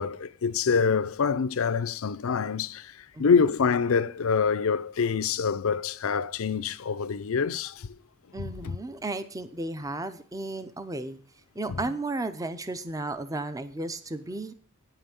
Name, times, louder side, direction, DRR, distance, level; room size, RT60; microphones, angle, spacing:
voice 1, 0.0-2.9 3.2-7.9 8.4-8.7 11.7-11.8, left 5 dB, 75° left, 0.5 m, -26 dB
voice 2, 8.3-11.2 11.5-14.5, right 2 dB, 15° right, 0.6 m, -34 dB
9.4 x 5.8 x 6.8 m
head